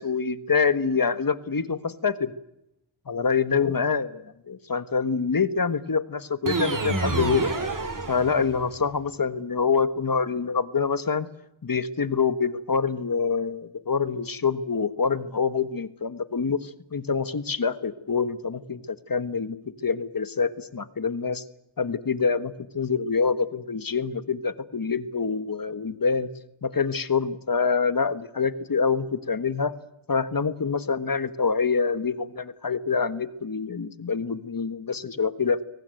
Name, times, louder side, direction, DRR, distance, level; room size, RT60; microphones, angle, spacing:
voice 1, 0.0-2.3 3.1-4.1 4.5-7.5 8.1-11.3 11.6-19.6 19.8-21.4 21.8-26.3 26.6-29.7 30.1-35.6, left 5 dB, 45° left, 13 dB, 1.5 m, -26 dB
sound 1, 6.4-8.8, right 3 dB, 40° right, 3.4 m, -28 dB
23.5 x 19.0 x 9.3 m, 0.83 s
wide cardioid pair, 70°, 47 cm